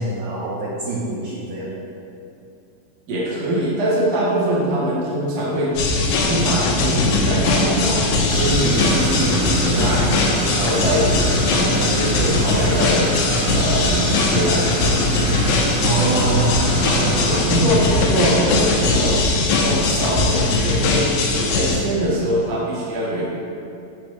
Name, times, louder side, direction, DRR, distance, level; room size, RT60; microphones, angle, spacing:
voice 1, 0.0-1.7 15.8-17.5, right 3 dB, 65° right, -7 dB, 2.4 m, -24 dB
voice 2, 3.1-5.8 6.0-10.1 10.5-13.1 13.5-14.7 17.2-21.1 21.4-23.2, right 1 dB, 50° right, -6 dB, 2.5 m, -23 dB
sound 1, 5.8-21.8, left 3 dB, 80° left, 3.1 m, -20 dB
Idling, 8.3-17.4, right 3 dB, 80° right, 2.9 m, -26 dB
10.5 x 8.6 x 3.3 m, 2.6 s
omnidirectional pair, 5.1 m